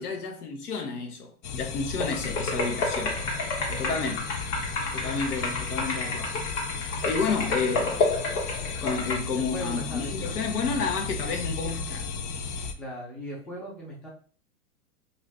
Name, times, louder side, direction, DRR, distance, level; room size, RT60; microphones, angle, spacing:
voice 1, 0.0-3.2 3.5-4.2 4.9-6.3 7.0-8.1 8.8-12.1, left 4 dB, 85° left, 1.0 m, -31 dB
sound 1, 1.4-12.7, left 5 dB, 55° left, 0.5 m, -34 dB
sound 2, 2.0-9.2, left 3 dB, 35° left, 1.1 m, -30 dB
voice 2, 3.6-4.0 9.3-10.8 12.8-14.1, equal, ahead, 0.4 m, -39 dB
2.7 x 2.4 x 3.3 m
hypercardioid pair, 130°, 44 cm